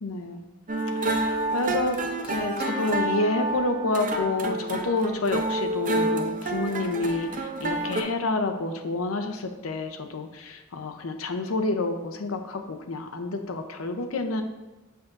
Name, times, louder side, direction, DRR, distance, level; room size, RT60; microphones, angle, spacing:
voice 1, 0.0-0.4 0.9-14.4, left 2 dB, 80° left, 6 dB, 0.7 m, -29 dB
sound 1, 0.7-8.0, right 2 dB, 40° right, 0.6 m, -28 dB
6.8 x 5.8 x 2.5 m, 1.1 s
head